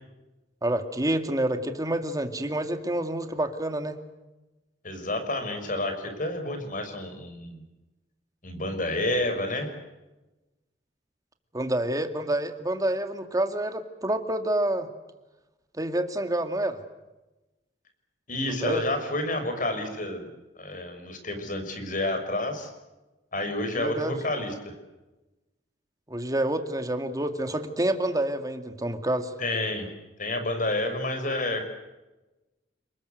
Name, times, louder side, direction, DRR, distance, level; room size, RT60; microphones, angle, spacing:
voice 1, 0.6-4.0 11.5-14.9 15.7-16.8 18.5-18.8 23.8-24.1 26.1-29.3, right 1 dB, 20° right, 7 dB, 2.4 m, -28 dB
voice 2, 4.8-7.6 8.4-9.7 18.3-20.3 20.6-22.7 23.3-24.7 29.4-29.9 30.2-31.6, left 1 dB, 50° left, 7 dB, 6.1 m, -29 dB
29.5 x 21.0 x 8.1 m, 1.1 s
head